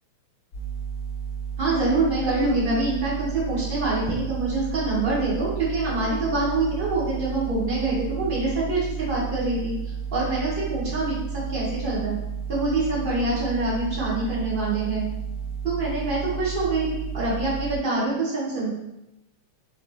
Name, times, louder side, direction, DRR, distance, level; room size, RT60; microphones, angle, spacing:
sound 1, 0.5-17.7, right 7 dB, 45° left, 1.1 m, -32 dB
voice 1, 1.6-12.2 12.5-15.1 15.6-18.7, right 2 dB, 20° right, -8 dB, 1.9 m, -25 dB
8.1 x 4.2 x 3.0 m, 0.90 s
omnidirectional pair, 3.7 m